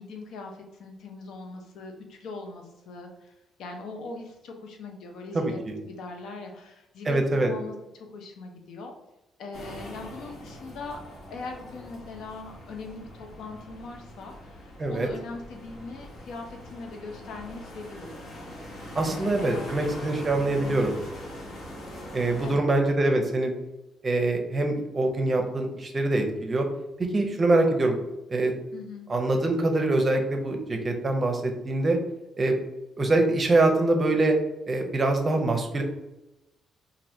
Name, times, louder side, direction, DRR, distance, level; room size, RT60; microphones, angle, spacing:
voice 1, 0.0-3.3 3.6-5.6 5.8-8.9 9.4-11.0 11.3-18.3 18.9-19.7 20.4-20.9 22.4-22.7 28.7-29.1, left 3 dB, 75° left, 3 dB, 0.6 m, -40 dB
voice 2, 5.3-5.8 7.1-7.5 14.8-15.1 18.9-21.0 22.1-23.5 24.0-26.7 27.0-28.0 28.3-28.5 29.1-32.0 32.4-32.6 33.0-34.4 34.7-35.8, right 2 dB, 35° right, 4 dB, 0.6 m, -24 dB
sound 1, 9.5-22.6, left 1 dB, 60° left, 1.0 m, -42 dB
3.2 x 2.5 x 2.6 m, 0.93 s
cardioid pair, 90°, 0 cm